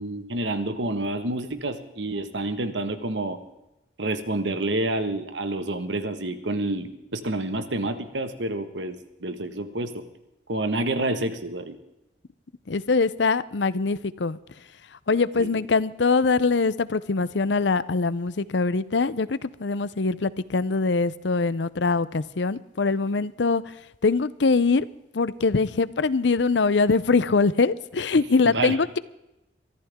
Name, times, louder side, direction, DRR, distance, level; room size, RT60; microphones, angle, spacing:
voice 1, 0.0-3.4 4.0-10.0 10.5-11.8 15.4-15.5 28.4-28.8, right 2 dB, 85° right, 9 dB, 1.6 m, -28 dB
voice 2, 12.7-14.4 15.1-23.7 24.0-24.9 25.1-29.0, left 4 dB, 80° left, 17 dB, 0.6 m, -23 dB
23.5 x 14.5 x 3.7 m, 0.92 s
head